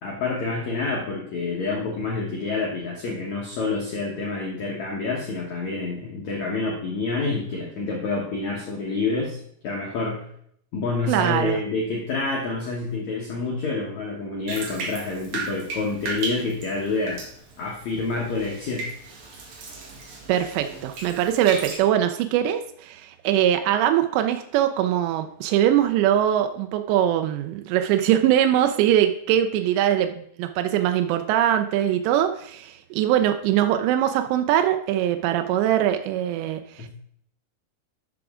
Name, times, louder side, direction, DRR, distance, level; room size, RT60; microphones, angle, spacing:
voice 1, 0.0-9.4 9.6-10.2 10.7-17.2 17.6-18.8 36.8-36.9, left 3 dB, 75° left, -2 dB, 1.6 m, -28 dB
voice 2, 11.1-11.6 20.3-36.9, right 11 dB, 85° right, 7 dB, 2.7 m, -22 dB
Bathtub (filling or washing), 14.5-21.8, right 4 dB, 60° right, 3.4 m, -36 dB
12.5 x 6.0 x 3.6 m, 0.68 s
omnidirectional pair, 5.1 m